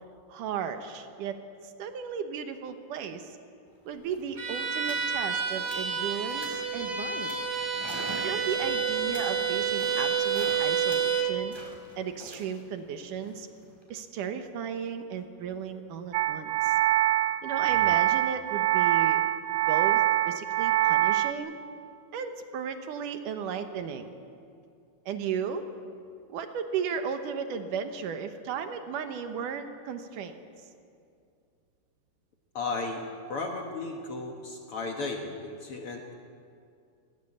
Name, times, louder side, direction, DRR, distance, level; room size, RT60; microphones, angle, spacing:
voice 1, 0.3-3.4 3.9-7.4 8.2-11.5 12.0-13.5 13.9-16.8 17.4-19.2 19.7-21.5 22.1-24.1 25.1-25.7 26.3-30.4, right 7 dB, 70° right, 7 dB, 2.2 m, -35 dB
sound 1, 3.7-3.8 4.0-4.3 4.8-5.1 5.4-6.0 6.3-6.7 7.2-10.6 10.9-13.9, equal, 5° right, 4.3 m, -45 dB
Bowed string instrument, 4.4-11.4, right 6 dB, 35° right, 2.6 m, -29 dB
sound 2, 16.1-21.3, right 13 dB, 85° right, 2.0 m, -24 dB
voice 2, 32.5-33.0 33.3-36.1, left 3 dB, 85° left, 2 dB, 1.2 m, -35 dB
22.5 x 16.5 x 8.7 m, 2.4 s
omnidirectional pair, 4.7 m